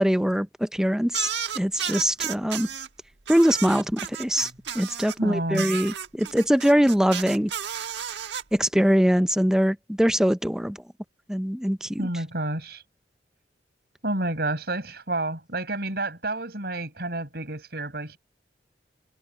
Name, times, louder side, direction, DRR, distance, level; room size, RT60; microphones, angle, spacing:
voice 1, 0.0-2.7 3.3-7.5 8.5-10.8 11.3-12.0, equal, 5° right, 0.5 m, -23 dB
sound 1, 1.1-2.9 3.3-5.2 5.5-8.4, right 9 dB, 80° right, 1.3 m, -33 dB
voice 2, 5.2-5.7 12.0-12.8 14.0-18.2, right 2 dB, 60° right, 6.1 m, -30 dB
head